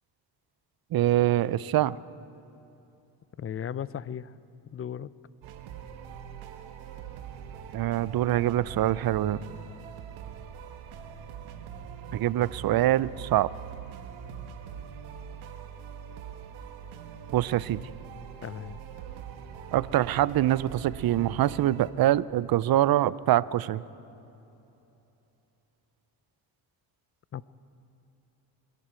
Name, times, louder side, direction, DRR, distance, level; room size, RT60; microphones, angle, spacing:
voice 1, 0.9-2.0 7.7-9.4 12.1-13.5 17.3-17.8 19.7-23.8, right 13 dB, 50° right, 19 dB, 0.6 m, -24 dB
voice 2, 3.4-4.3 4.7-5.1 18.4-18.8 27.3-27.5, left 9 dB, 30° left, 19 dB, 0.5 m, -36 dB
sound 1, 5.4-21.9, right 8 dB, 85° right, 1.4 m, -43 dB
26.5 x 11.5 x 4.5 m, 2.9 s
supercardioid pair, 65°, 47 cm